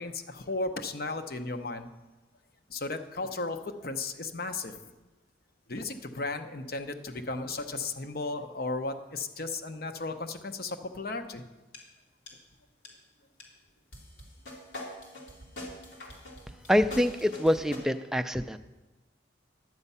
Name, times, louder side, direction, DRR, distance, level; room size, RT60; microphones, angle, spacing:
voice 1, 0.0-1.9 2.7-4.8 5.7-11.4, left 3 dB, 55° left, 7 dB, 0.7 m, -35 dB
sound 1, 11.7-11.8 12.3-12.5 12.8-12.9 13.4-13.5 13.9-17.8, left 1 dB, 90° left, 2.5 m, -43 dB
voice 2, 16.7-18.6, equal, 5° right, 8 dB, 0.3 m, -25 dB
11.0 x 8.1 x 5.5 m, 1.1 s
head